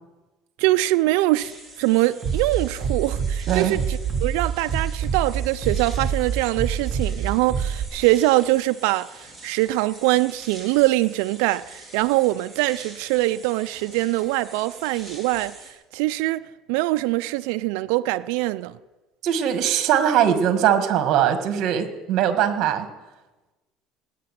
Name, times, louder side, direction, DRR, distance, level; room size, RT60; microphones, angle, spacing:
voice 1, 0.6-1.5 1.8-15.5 15.9-16.4 16.7-18.8, right 18 dB, 80° right, 0.4 m, -23 dB
sound 1, 1.4-15.7, right 2 dB, ahead, 3.8 m, -45 dB
Bass drum, 2.2-7.8, right 6 dB, 30° right, 2.8 m, -26 dB
voice 2, 3.5-3.8 19.2-22.9, right 9 dB, 55° right, 1.8 m, -21 dB
17.5 x 6.8 x 9.4 m
cardioid pair, 130°, 0 cm